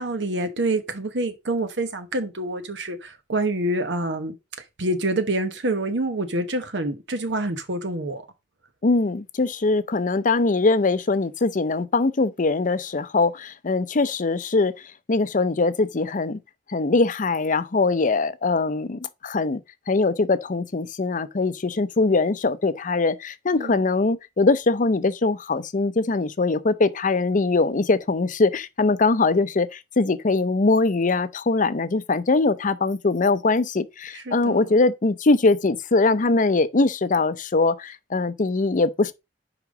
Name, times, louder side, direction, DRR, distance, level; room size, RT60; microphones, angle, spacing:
voice 1, 0.0-4.4 4.8-8.2 23.5-23.8 34.1-34.7, right 2 dB, 80° right, 1.1 m, -27 dB
voice 2, 8.8-14.7 15.1-16.4 16.7-19.6 19.9-39.1, left 3 dB, 45° left, 0.6 m, -22 dB
5.9 x 5.1 x 4.9 m
head